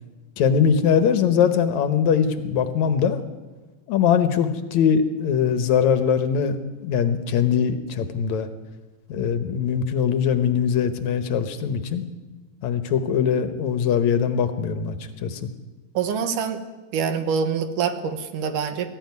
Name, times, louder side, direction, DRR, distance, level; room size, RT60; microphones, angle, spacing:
voice 1, 0.4-3.2 3.9-6.6 6.8-8.5 9.1-12.1 12.6-15.0 15.2-15.5, left 7 dB, 70° left, 9 dB, 2.2 m, -21 dB
voice 2, 15.9-16.6 16.9-18.9, right 6 dB, 80° right, 9 dB, 2.9 m, -25 dB
19.5 x 14.5 x 9.5 m, 1.3 s
omnidirectional pair, 3.7 m